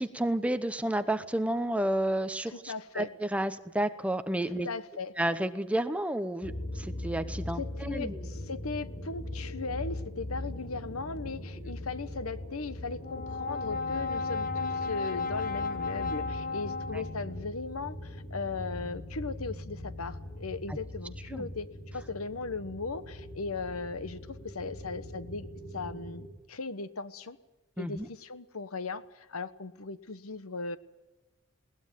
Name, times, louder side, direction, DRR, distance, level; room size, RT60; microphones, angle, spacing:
voice 1, 0.0-4.7 5.2-8.3 11.6-11.7 16.9-17.0 20.7-20.8 21.3-21.5 27.8-28.1, right 1 dB, 5° right, 10 dB, 0.9 m, -31 dB
voice 2, 2.5-3.1 4.6-5.1 7.6-21.7 21.9-25.5 25.7-27.4 27.8-30.8, left 4 dB, 90° left, 13 dB, 1.2 m, -38 dB
sound 1, 6.4-26.3, left 1 dB, 55° left, 5.5 m, -41 dB
Brass instrument, 13.0-17.4, left 4 dB, 40° left, 1.3 m, -34 dB
20.5 x 18.5 x 9.3 m, 1.0 s
head